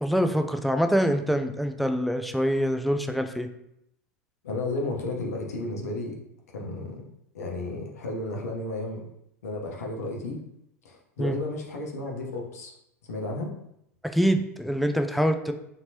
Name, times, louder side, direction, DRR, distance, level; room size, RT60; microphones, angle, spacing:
voice 1, 0.0-3.5 11.2-11.4 14.1-15.5, equal, ahead, 6 dB, 0.3 m, -25 dB
voice 2, 4.4-6.2 6.5-7.0 7.3-9.0 9.4-10.4 10.8-12.7 13.1-13.5, left 2 dB, 75° left, 0 dB, 0.8 m, -33 dB
4.3 x 2.9 x 2.7 m, 0.78 s
hypercardioid pair, 85°, 8 cm